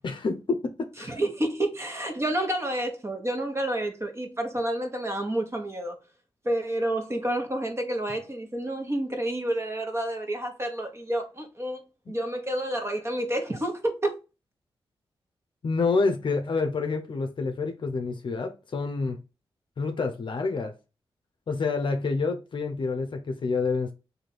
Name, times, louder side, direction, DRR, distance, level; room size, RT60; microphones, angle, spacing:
voice 1, 0.0-1.2 15.6-19.2 19.8-20.7 21.5-23.9, left 4 dB, 55° left, 0.6 m, -28 dB
voice 2, 1.1-5.9 6.4-11.8 12.1-14.1, right 1 dB, 30° right, 1.3 m, -29 dB
3.2 x 2.7 x 4.1 m
cardioid pair, 65°, 10 cm